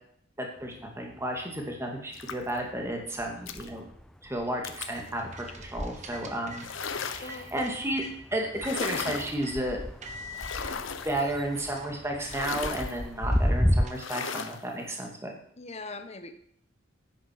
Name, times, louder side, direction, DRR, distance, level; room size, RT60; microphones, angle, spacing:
voice 1, 0.4-3.9 4.2-5.5 5.7-8.0 8.3-9.8 11.0-15.3, right 1 dB, 15° right, 1 dB, 2.3 m, -33 dB
sound 1, 0.6-1.8 2.2-13.9, equal, 5° left, 0.4 m, -34 dB
sound 2, 2.1-2.6 3.5-3.7 4.6-5.0 6.6-7.5 8.6-9.4 10.4-11.3 12.3-13.0 13.9-14.6, left 6 dB, 80° left, 1.0 m, -36 dB
sound 3, 4.7-8.1 8.6-9.6 10.0-10.6 11.3-11.4 11.7-14.5, equal, 35° right, 1.5 m, -46 dB
voice 2, 7.2-7.5 15.6-16.3, left 3 dB, 35° left, 8 dB, 1.2 m, -41 dB
10.5 x 9.3 x 6.1 m, 0.66 s
head